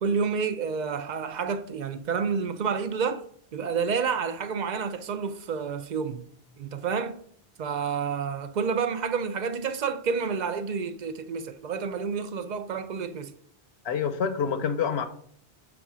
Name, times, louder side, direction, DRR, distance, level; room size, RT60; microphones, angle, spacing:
voice 1, 0.0-3.2 3.5-6.2 6.6-7.2 7.6-13.3, right 6 dB, 55° right, 0.5 m, -29 dB
voice 2, 13.8-15.1, left 6 dB, 75° left, 0.9 m, -27 dB
6.9 x 3.6 x 6.0 m
omnidirectional pair, 1.1 m